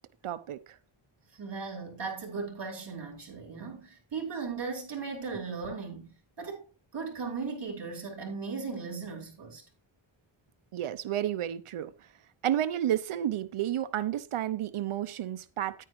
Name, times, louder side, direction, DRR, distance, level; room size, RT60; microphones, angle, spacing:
voice 1, 0.2-0.8 10.7-11.9 12.4-15.8, right 11 dB, 90° right, 0.8 m, -31 dB
voice 2, 1.3-6.6 6.9-9.6, right 4 dB, 60° right, 4.3 m, -37 dB
9.8 x 9.3 x 3.1 m
wide cardioid pair, 75°, 49 cm